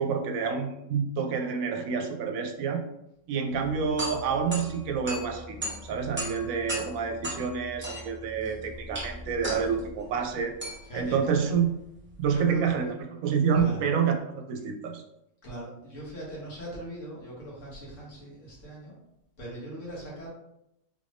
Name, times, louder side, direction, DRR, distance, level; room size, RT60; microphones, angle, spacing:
voice 1, 0.0-2.8 3.3-10.5 10.9-11.7 12.2-15.0, right 6 dB, 85° right, 5 dB, 1.0 m, -28 dB
sound 1, 3.5-12.6, equal, 10° right, 0.8 m, -38 dB
voice 2, 13.6-13.9 15.4-18.9 19.4-20.3, right 1 dB, 65° left, -5 dB, 1.7 m, -40 dB
3.7 x 2.5 x 3.4 m, 0.82 s
omnidirectional pair, 1.4 m